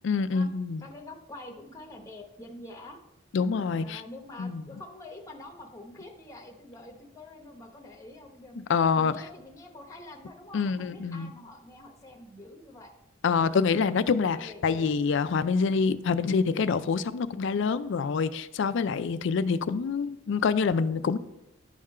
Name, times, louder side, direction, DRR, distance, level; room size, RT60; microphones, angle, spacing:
voice 1, 0.0-0.9 3.3-4.0 4.4-4.6 8.6-9.1 10.5-11.3 13.2-21.2, left 5 dB, 65° left, 0.4 m, -26 dB
voice 2, 0.8-3.0 3.8-8.7 8.9-12.9 14.3-14.9 19.4-19.7, left 2 dB, 15° left, 0.8 m, -46 dB
11.0 x 3.7 x 4.3 m
head